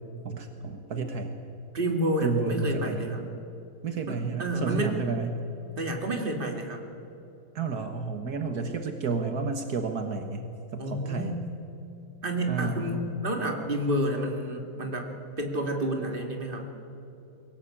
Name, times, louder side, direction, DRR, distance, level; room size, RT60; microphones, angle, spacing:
voice 1, 0.3-1.3 2.2-3.1 3.8-5.3 7.6-11.4 12.5-13.1, right 4 dB, 70° right, 6 dB, 1.8 m, -31 dB
voice 2, 1.7-3.3 4.1-4.9 5.8-6.8 10.8-11.4 12.2-15.1 15.4-16.7, right 1 dB, 30° right, 3 dB, 2.6 m, -29 dB
23.0 x 17.5 x 8.6 m, 2.9 s
omnidirectional pair, 1.7 m